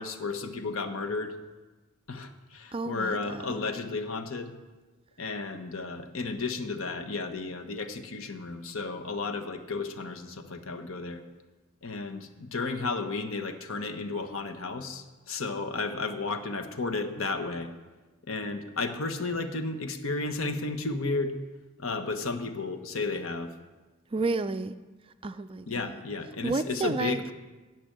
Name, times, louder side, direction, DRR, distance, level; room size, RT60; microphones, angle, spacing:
voice 1, 0.0-1.4 2.1-4.5 5.2-11.2 11.8-17.7 18.3-21.4 21.8-23.5 25.7-27.3, left 3 dB, 65° left, 8 dB, 1.1 m, -33 dB
voice 2, 2.7-3.6 24.1-24.8 25.2-26.0 26.4-27.2, right 3 dB, 25° right, 11 dB, 0.4 m, -31 dB
14.0 x 6.1 x 9.1 m, 1.2 s
head